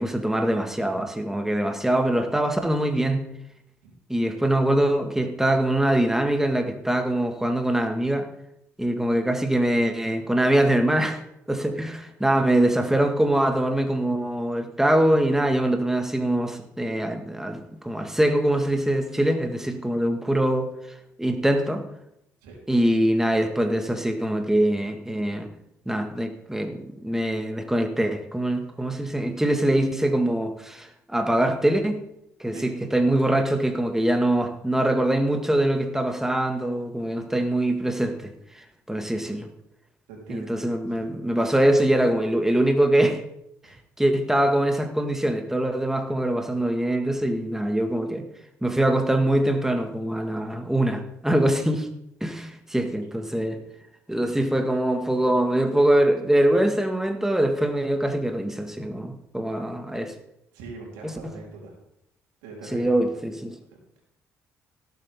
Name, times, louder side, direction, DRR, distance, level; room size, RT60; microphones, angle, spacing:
voice 1, 0.0-3.2 4.1-8.3 8.8-11.2 11.5-20.7 21.2-21.8 22.7-25.5 25.9-32.0 32.4-39.5 40.3-43.2 44.0-48.3 48.6-51.9 52.2-53.6 54.1-60.1 61.0-61.1 62.7-63.6, right 1 dB, 5° right, 5 dB, 1.9 m, -23 dB
voice 2, 38.9-39.4 40.1-40.6 40.9-41.0 43.6-43.8 52.8-52.9 60.5-61.8 62.4-63.2, right 3 dB, 80° right, -1 dB, 3.7 m, -43 dB
17.5 x 8.3 x 3.7 m, 0.79 s
hypercardioid pair, 50°, 7 cm